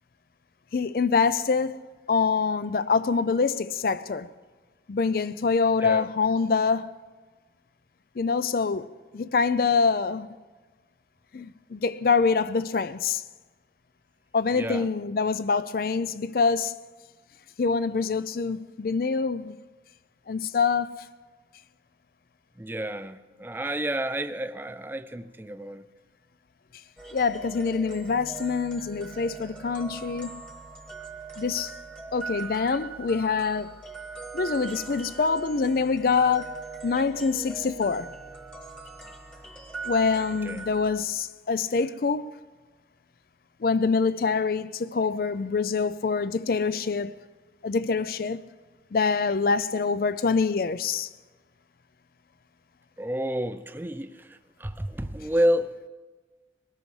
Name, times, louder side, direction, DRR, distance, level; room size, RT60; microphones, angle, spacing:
voice 1, 0.7-1.8 2.1-4.3 4.9-6.9 8.2-10.3 11.3-13.2 14.3-16.7 17.6-19.5 20.3-21.1 27.1-30.4 31.4-31.7 32.1-33.8 34.3-38.1 39.8-42.3 43.6-47.1 47.6-48.4 48.9-51.1, left 5 dB, 55° left, 0.4 m, -25 dB
voice 2, 14.5-14.9 22.6-25.9 40.4-40.6 53.0-55.9, equal, 10° right, 0.4 m, -30 dB
sound 1, 27.0-41.0, right 4 dB, 5° left, 1.3 m, -41 dB
22.5 x 18.5 x 3.3 m
head